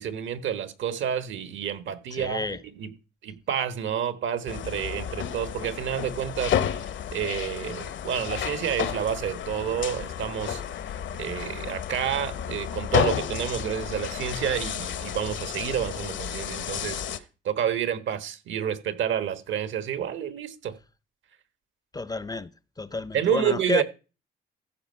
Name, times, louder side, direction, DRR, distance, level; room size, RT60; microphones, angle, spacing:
voice 1, 0.0-2.9 3.2-10.6 11.1-17.0 17.4-20.7 23.1-23.8, right 9 dB, 75° right, 1.4 m, -29 dB
voice 2, 2.1-2.6 21.9-22.5 22.8-23.8, left 3 dB, 20° left, 0.5 m, -30 dB
sound 1, 4.5-17.2, left 9 dB, 70° left, 1.0 m, -31 dB
14.5 x 5.3 x 5.6 m
cardioid pair, 90°, 20 cm